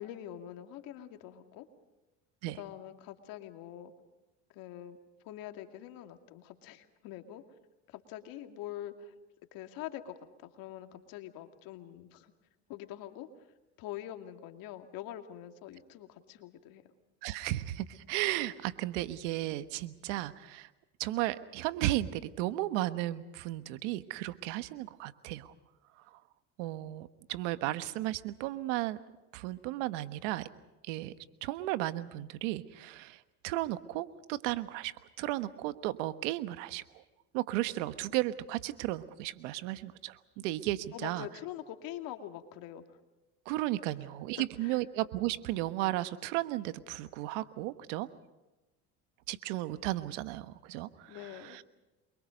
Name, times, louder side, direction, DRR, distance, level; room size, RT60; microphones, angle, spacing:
voice 1, 0.0-1.7 2.5-3.9 4.5-5.0 5.2-7.4 7.9-9.1 9.5-12.3 12.7-13.3 13.8-16.8 40.9-43.0 43.9-44.1 44.4-44.8 51.1-51.6, left 12 dB, 70° left, 6 dB, 2.5 m, -44 dB
voice 2, 17.2-20.7 21.0-25.5 26.6-29.0 29.3-30.5 30.8-31.1 31.4-36.8 37.3-41.3 43.5-48.1 49.3-51.2 51.4-51.6, right 16 dB, 80° right, 13 dB, 1.3 m, -34 dB
29.0 x 23.5 x 5.3 m, 1.1 s
supercardioid pair, 90°, 36 cm